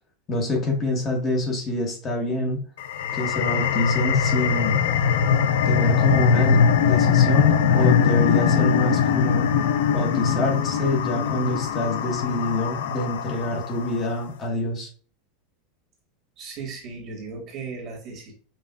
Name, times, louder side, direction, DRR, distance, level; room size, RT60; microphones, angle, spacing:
voice 1, 0.3-2.6 3.1-4.8 5.6-9.5 9.9-14.9, left 2 dB, 25° left, 0 dB, 1.0 m, -26 dB
sound 1, 2.8-14.0, left 7 dB, 80° left, 0.5 m, -21 dB
voice 2, 16.4-18.3, right 4 dB, 35° right, 0 dB, 1.5 m, -36 dB
5.6 x 2.4 x 2.3 m, 0.41 s
supercardioid pair, 155°, 0 cm